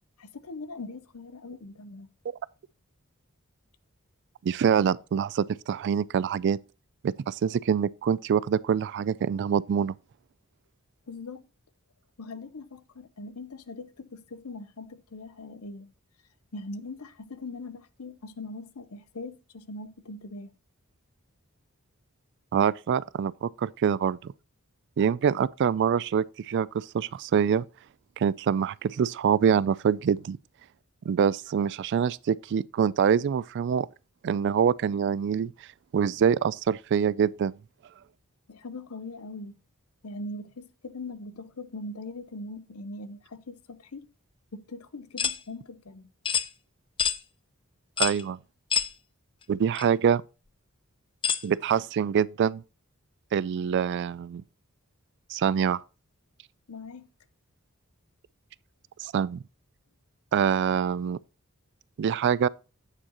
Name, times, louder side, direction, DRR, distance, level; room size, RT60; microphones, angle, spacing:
voice 1, 0.2-2.1 11.1-11.4 12.2-15.9 16.5-20.5 38.5-39.6 40.0-44.1 44.5-46.0 56.7-57.1, left 2 dB, 85° left, 0.8 m, -41 dB
voice 2, 4.4-6.6 7.0-9.9 22.5-24.3 25.0-27.6 28.2-30.4 31.1-33.9 34.2-35.5 35.9-37.5 48.0-48.4 49.5-50.2 51.4-52.6 53.3-54.4 55.3-55.8 59.0-59.4 60.3-61.2 62.0-62.5, right 7 dB, 55° right, 0.3 m, -25 dB
sound 1, 45.2-45.4 46.3-46.5 47.0-47.2 48.0-48.2 48.7-48.9 49.8-49.9 51.2-51.5, left 8 dB, 25° left, 0.4 m, -26 dB
8.7 x 7.4 x 2.9 m
head